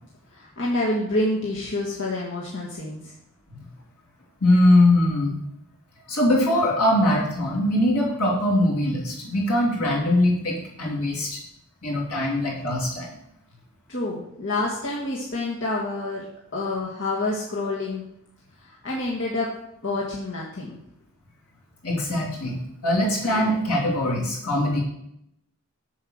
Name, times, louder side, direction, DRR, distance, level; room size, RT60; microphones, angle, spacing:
voice 1, 0.3-3.1 13.9-16.2 16.5-18.0 18.6-19.5 19.8-20.8 22.9-23.0 23.3-23.4, left 2 dB, 60° left, -4 dB, 1.7 m, -28 dB
voice 2, 4.4-5.4 6.1-11.4 11.8-13.1 21.8-24.8, left 1 dB, 80° left, -3 dB, 3.2 m, -22 dB
7.5 x 6.9 x 6.4 m, 0.78 s
head